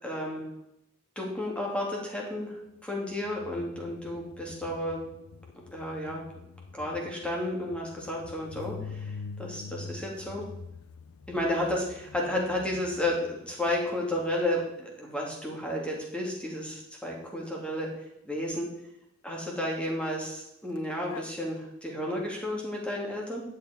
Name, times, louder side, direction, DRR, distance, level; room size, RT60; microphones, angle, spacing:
voice 1, 0.0-0.4 1.2-5.0 5.7-6.2 6.7-10.4 11.3-17.9 18.2-18.7 19.2-23.4, left 1 dB, 5° left, -2 dB, 2.7 m, -32 dB
sound 1, 3.0-14.6 20.8-20.9 21.1-21.3, left 5 dB, 90° left, 0.5 m, -45 dB
11.0 x 7.8 x 4.5 m, 0.81 s
head